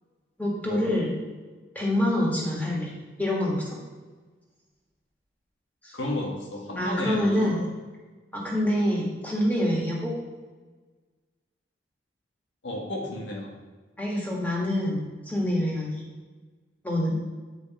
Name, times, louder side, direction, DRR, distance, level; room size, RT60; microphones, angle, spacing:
voice 1, 0.4-1.1 1.8-3.8 5.8-6.0 6.8-7.6 8.3-10.1 14.0-15.9 16.8-17.1, left 1 dB, 10° left, -4 dB, 1.8 m, -26 dB
voice 2, 5.9-7.6 12.6-13.5, left 1 dB, 90° left, -1 dB, 1.7 m, -33 dB
8.3 x 5.1 x 4.3 m, 1.3 s
head